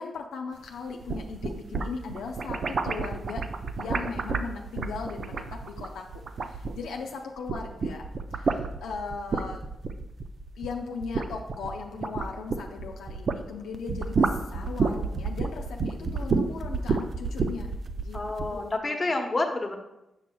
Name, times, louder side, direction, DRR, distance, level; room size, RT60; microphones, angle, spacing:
voice 1, 0.0-3.4 3.8-6.0 6.4-8.0 8.3-9.6 10.6-18.2 18.5-19.1, left 5 dB, 85° left, 2 dB, 0.4 m, -38 dB
sound 1, 0.9-7.1 7.4-13.4 13.7-18.6, right 4 dB, 60° right, 0.4 m, -30 dB
voice 2, 18.1-19.7, left 2 dB, 30° left, 3 dB, 1.0 m, -29 dB
7.0 x 6.0 x 2.2 m, 0.90 s
supercardioid pair, 50°, 0 cm